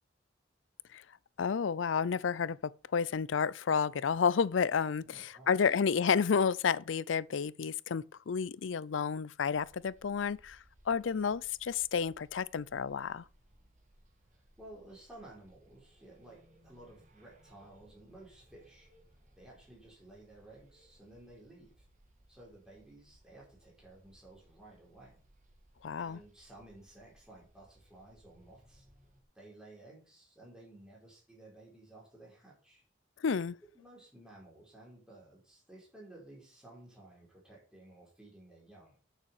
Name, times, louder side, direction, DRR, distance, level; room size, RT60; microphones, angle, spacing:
voice 1, 1.4-10.6 10.9-13.2 25.8-26.2 33.2-33.6, left 6 dB, 75° left, 0.5 m, -31 dB
voice 2, 5.1-5.7 14.3-18.9 19.4-21.8 22.3-25.2 26.0-28.9 29.3-32.8 33.7-39.0, right 1 dB, 5° right, 5.0 m, -55 dB
sound 1, 9.5-29.2, right 1 dB, 40° right, 2.2 m, -64 dB
8.9 x 6.8 x 7.2 m
head